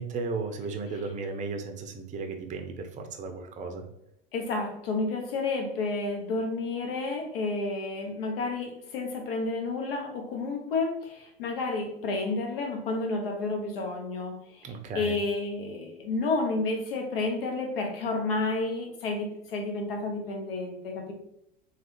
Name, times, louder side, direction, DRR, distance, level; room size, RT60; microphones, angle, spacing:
voice 1, 0.0-3.8 14.6-15.2, right 4 dB, 25° right, 6 dB, 0.5 m, -35 dB
voice 2, 4.3-21.1, left 3 dB, 75° left, 3 dB, 0.9 m, -31 dB
3.2 x 2.3 x 3.0 m, 0.78 s
hypercardioid pair, 95°, 29 cm